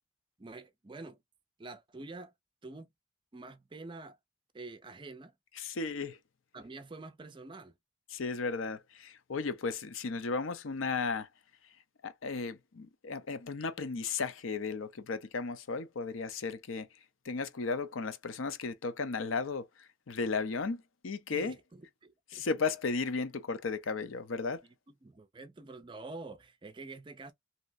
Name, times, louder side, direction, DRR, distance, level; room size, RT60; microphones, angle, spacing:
voice 1, 0.4-1.2 1.6-2.3 2.6-2.9 3.3-4.2 4.5-5.3 6.5-7.7 21.3-22.5 25.0-27.3, right 3 dB, 25° right, 0.4 m, -47 dB
voice 2, 5.5-6.2 8.1-11.3 11.6-11.7 12.0-16.9 17.2-21.6 22.3-24.6, left 4 dB, 90° left, 0.6 m, -35 dB
3.1 x 2.8 x 2.6 m
head